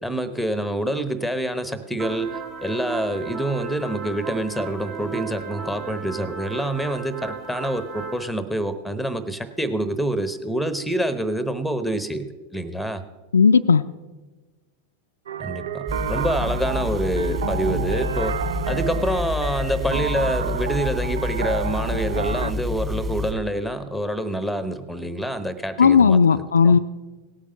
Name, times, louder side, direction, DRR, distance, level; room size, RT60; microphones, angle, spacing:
voice 1, 0.0-12.3 12.5-13.0 15.4-26.8, right 1 dB, ahead, 13 dB, 0.9 m, -27 dB
sound 1, 2.0-8.2, right 5 dB, 35° right, 1.2 m, -35 dB
voice 2, 13.3-13.8 25.8-26.8, left 6 dB, 70° left, 10 dB, 0.4 m, -15 dB
sound 2, 15.3-22.5, right 8 dB, 65° right, 0.5 m, -30 dB
sound 3, 15.9-23.3, left 1 dB, 20° right, 2.0 m, -28 dB
17.5 x 8.6 x 5.4 m, 1.2 s
figure-of-eight pair, 90°, 0 cm